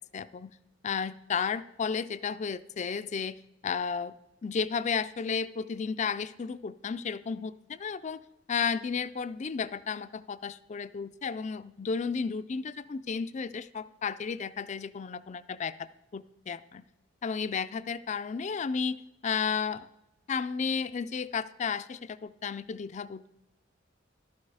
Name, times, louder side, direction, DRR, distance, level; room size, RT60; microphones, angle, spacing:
voice 1, 0.1-0.5 0.8-4.1 4.4-8.2 8.5-16.8 17.2-19.9 20.3-23.3, left 6 dB, 40° left, 15 dB, 0.4 m, -33 dB
12.0 x 8.7 x 4.8 m, 0.92 s
head